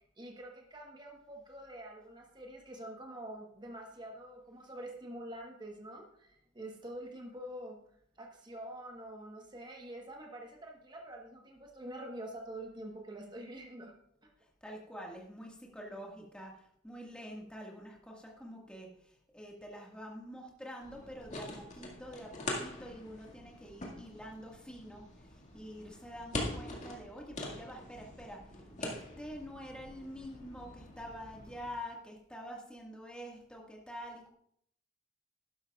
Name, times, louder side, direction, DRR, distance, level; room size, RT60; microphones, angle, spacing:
voice 1, 0.2-7.8 8.2-14.0 14.2-14.3, right 1 dB, 25° right, 1 dB, 1.2 m, -46 dB
voice 2, 14.6-16.5 16.8-28.4 28.8-34.3, equal, 5° left, -1 dB, 1.7 m, -47 dB
sound 1, 20.8-31.7, left 1 dB, 40° left, 2.0 m, -44 dB
12.0 x 11.5 x 2.4 m, 0.69 s
head